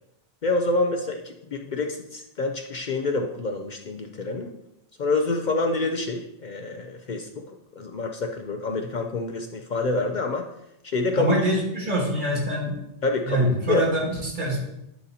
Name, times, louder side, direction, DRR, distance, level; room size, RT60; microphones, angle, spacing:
voice 1, 0.4-4.5 5.0-7.4 7.8-10.5 10.8-11.3 13.0-13.9, left 2 dB, 55° left, 4 dB, 0.5 m, -27 dB
voice 2, 11.1-12.8 13.2-14.8, equal, 40° right, -3 dB, 1.8 m, -25 dB
10.5 x 4.0 x 2.8 m, 0.84 s
omnidirectional pair, 1.2 m